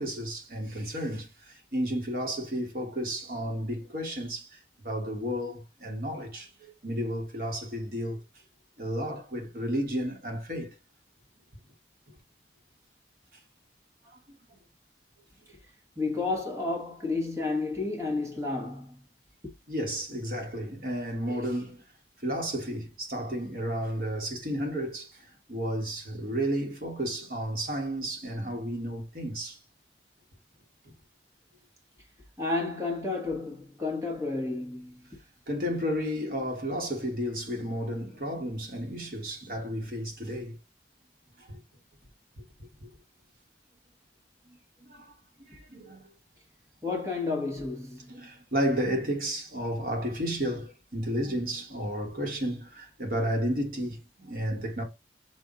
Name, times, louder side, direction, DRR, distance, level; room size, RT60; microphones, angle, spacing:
voice 1, 0.0-4.6 4.8-8.2 8.8-10.7 14.0-14.2 19.7-21.8 22.2-29.6 35.5-40.6 41.4-41.6 42.4-42.9 44.9-45.1 45.5-46.1 48.1-54.8, equal, 50° right, 1.3 m, -32 dB
voice 2, 16.0-19.0 19.4-19.5 32.4-35.2 46.8-48.1, left 3 dB, 15° right, 1.2 m, -31 dB
5.5 x 2.5 x 3.7 m
head